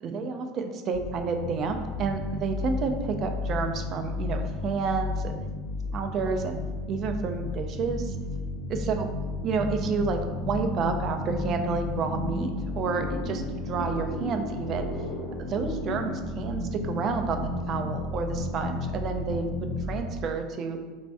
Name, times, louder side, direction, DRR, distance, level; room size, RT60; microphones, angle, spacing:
voice 1, 0.0-5.4 5.9-6.6 6.9-8.1 8.7-9.1 9.4-14.9 15.4-20.8, right 4 dB, 35° right, 5 dB, 0.3 m, -30 dB
sound 1, 0.9-20.0, left 2 dB, 45° left, 0.9 m, -33 dB
4.2 x 2.6 x 3.4 m, 1.4 s
supercardioid pair, 150°, 0 cm